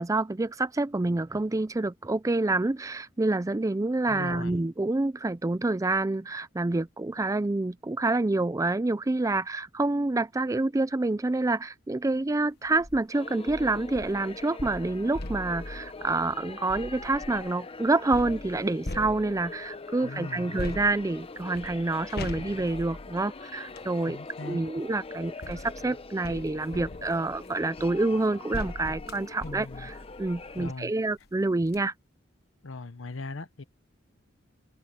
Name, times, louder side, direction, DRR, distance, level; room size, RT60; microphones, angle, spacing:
voice 1, 0.0-29.9 30.2-31.9, right 2 dB, 15° right, 0.4 m, -27 dB
voice 2, 4.1-4.6 20.0-20.6 24.1-24.6 29.4-29.9 30.6-30.9 32.6-33.6, left 3 dB, 80° left, 0.9 m, -39 dB
sound 1, 12.7-13.0 13.5-17.5 18.1-19.7 20.6-23.9 24.9-30.8 31.2-31.3 31.6-31.8, left 1 dB, 55° left, 1.4 m, -41 dB
sound 2, 13.1-30.7, left 3 dB, 30° left, 0.8 m, -43 dB
open air
head